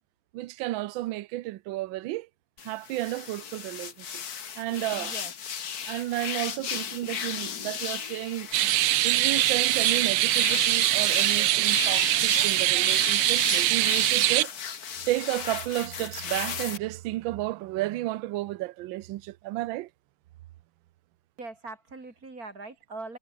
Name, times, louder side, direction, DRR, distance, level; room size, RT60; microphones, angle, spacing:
voice 1, 0.3-2.3 2.6-4.2 4.6-5.2 5.9-8.7 9.0-14.5 15.1-19.9, right 17 dB, 70° right, 1.4 m, -32 dB
sound 1, 2.6-16.8, left 7 dB, 50° left, 1.8 m, -36 dB
voice 2, 5.0-5.3 21.4-23.2, right 3 dB, 40° right, 4.0 m, -41 dB
sound 2, 8.5-14.4, right 16 dB, 85° right, 1.6 m, -23 dB
omnidirectional pair, 2.4 m